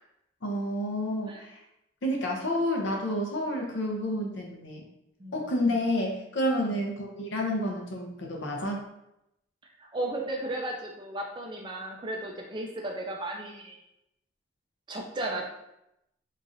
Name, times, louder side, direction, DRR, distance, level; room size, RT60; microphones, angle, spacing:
voice 1, 0.4-1.6 2.0-4.8 5.3-8.8, left 1 dB, 65° left, 0 dB, 0.6 m, -29 dB
voice 2, 9.8-13.8 14.9-15.4, right 1 dB, 25° right, 0 dB, 0.3 m, -35 dB
3.0 x 2.4 x 2.6 m, 0.84 s
head